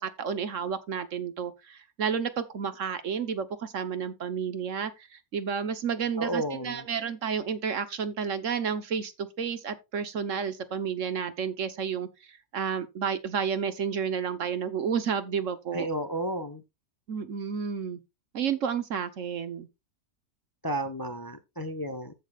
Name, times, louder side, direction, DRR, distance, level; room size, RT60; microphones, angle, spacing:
voice 1, 0.0-4.9 5.3-15.9 17.1-18.0 18.3-19.7, right 7 dB, 60° right, 1.3 m, -31 dB
voice 2, 6.2-6.8 15.7-16.6 20.6-22.1, right 1 dB, 20° left, 0.7 m, -32 dB
15.0 x 6.1 x 2.4 m
omnidirectional pair, 1.5 m